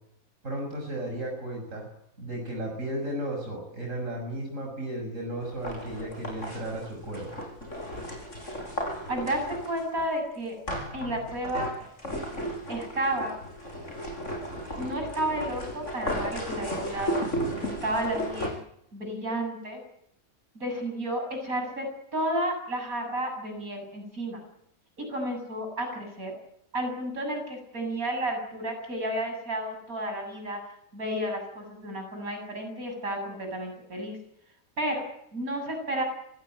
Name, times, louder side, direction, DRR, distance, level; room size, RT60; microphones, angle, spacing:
voice 1, 0.4-1.9 2.2-7.4 12.1-12.2, right 1 dB, 60° right, 1 dB, 6.8 m, -34 dB
sound 1, 5.4-10.0 10.7-18.5, equal, 55° left, 7.0 m, -35 dB
voice 2, 9.1-10.6 10.9-11.7 12.7-13.4 14.8-17.2 17.6-18.6 18.9-19.8 20.5-24.4 25.0-26.3 26.7-30.6 30.9-34.2 34.8-36.0, right 1 dB, 75° right, 4 dB, 8.0 m, -32 dB
25.5 x 17.5 x 9.0 m, 0.77 s
omnidirectional pair, 1.5 m